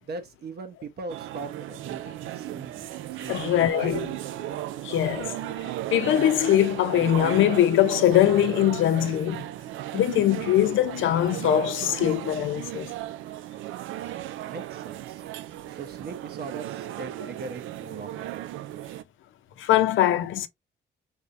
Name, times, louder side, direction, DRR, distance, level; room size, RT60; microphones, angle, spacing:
voice 1, 0.0-2.9 3.1-3.4 3.7-4.2 14.5-15.3 15.7-18.3, right 4 dB, 55° right, 1.0 m, -40 dB
sound 1, 1.1-19.0, right 14 dB, 85° right, 0.4 m, -35 dB
voice 2, 3.3-4.1 4.8-5.4 5.9-9.5 9.9-12.9 19.6-20.5, left 12 dB, 80° left, 0.6 m, -22 dB
3.5 x 3.3 x 2.6 m
cardioid pair, 90°, 20 cm